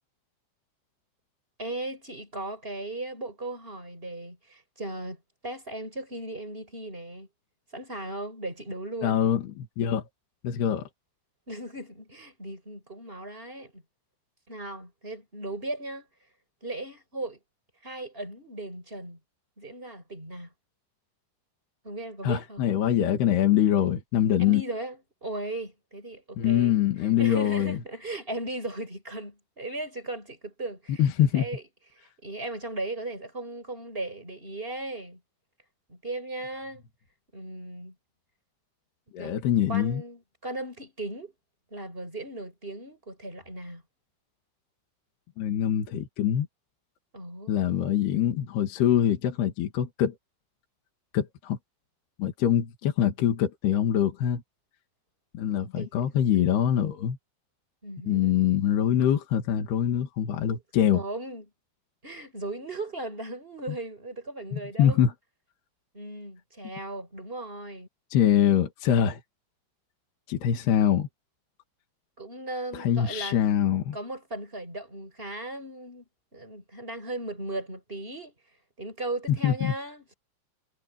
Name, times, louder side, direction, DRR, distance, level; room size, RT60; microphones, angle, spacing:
voice 1, 1.6-7.3 7.7-9.2 11.5-13.8 14.5-16.1 16.6-17.4 17.8-19.2 19.6-20.5 21.8-22.7 24.4-26.8 27.2-31.6 32.2-35.2 35.9-36.8 37.3-37.9 39.2-39.3 39.7-41.3 41.7-43.8 47.1-47.5 55.8-55.9 56.2-56.6 57.8-58.4 60.9-61.4 62.0-65.0 65.9-67.9 72.2-73.4 73.9-76.0 76.3-78.3 78.8-80.1, right 2 dB, 10° right, 5.1 m, -37 dB
voice 2, 9.0-10.0 10.4-10.8 22.2-24.6 26.4-27.8 31.0-31.5 39.1-40.0 45.4-46.5 47.5-50.2 51.1-51.6 52.2-54.4 55.3-57.2 58.1-61.0 64.5-65.1 68.1-69.2 70.3-71.1 72.7-74.0 79.4-79.7, left 10 dB, 60° left, 3.9 m, -24 dB
omnidirectional pair, 5.6 m